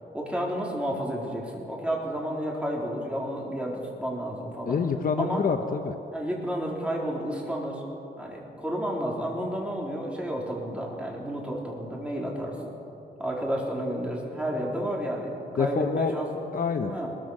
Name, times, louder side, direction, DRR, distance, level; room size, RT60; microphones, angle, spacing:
voice 1, 0.1-4.8 5.2-5.4 6.1-7.8 8.2-12.7 13.2-16.4 16.9-17.1, equal, 5° right, -2 dB, 4.1 m, -31 dB
voice 2, 4.7-5.9 15.6-16.1 16.5-16.9, left 5 dB, 55° left, 6 dB, 1.1 m, -26 dB
21.5 x 21.0 x 6.6 m, 2.8 s
wide cardioid pair, 150°, 18 cm